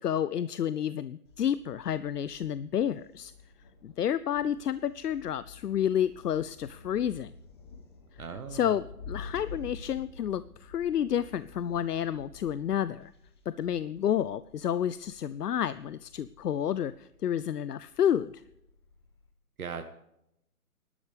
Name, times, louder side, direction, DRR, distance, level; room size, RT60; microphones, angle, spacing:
voice 1, 0.0-3.3 3.8-7.3 8.1-8.2 8.5-13.1 13.6-18.4, left 9 dB, 85° left, 16 dB, 0.7 m, -30 dB
Thunder, 1.2-19.3, left 4 dB, 15° left, 1.0 m, -50 dB
voice 2, 8.2-8.8 19.6-19.8, right 6 dB, 65° right, 7 dB, 1.4 m, -38 dB
21.0 x 12.0 x 3.4 m, 0.82 s
hypercardioid pair, 160°, 46 cm